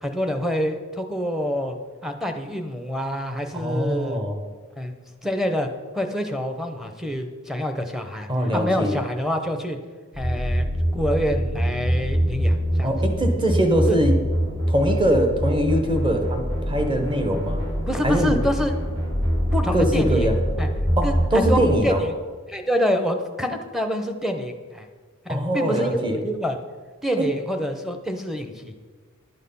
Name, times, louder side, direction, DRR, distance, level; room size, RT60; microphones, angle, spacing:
voice 1, 0.0-1.8 2.0-4.2 4.8-4.9 5.2-5.7 5.9-9.8 10.2-10.7 10.9-13.0 13.9-14.0 17.9-18.7 19.5-20.3 20.6-20.7 21.0-22.1 22.5-24.9 25.2-26.6 27.0-28.8, equal, ahead, 5 dB, 0.7 m, -26 dB
voice 2, 3.5-4.4 8.3-9.0 12.8-14.1 14.7-17.6 18.0-18.4 19.7-20.3 21.0-22.0 25.3-26.2 27.2-27.3, equal, 20° right, 4 dB, 1.1 m, -22 dB
sound 1, 10.1-21.7, equal, 50° right, 2.4 m, -24 dB
11.0 x 6.5 x 5.5 m, 1.5 s
head